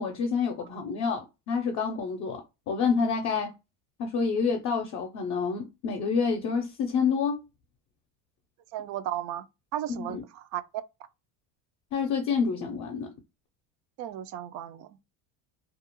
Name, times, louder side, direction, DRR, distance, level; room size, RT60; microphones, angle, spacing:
voice 1, 0.0-3.5 4.0-7.4 10.0-10.2 11.9-13.1, left 5 dB, 45° left, 0.6 m, -28 dB
voice 2, 8.7-9.5 9.7-10.6 14.0-15.0, right 11 dB, 55° right, 0.4 m, -35 dB
2.4 x 2.0 x 2.9 m
supercardioid pair, 120°, 36 cm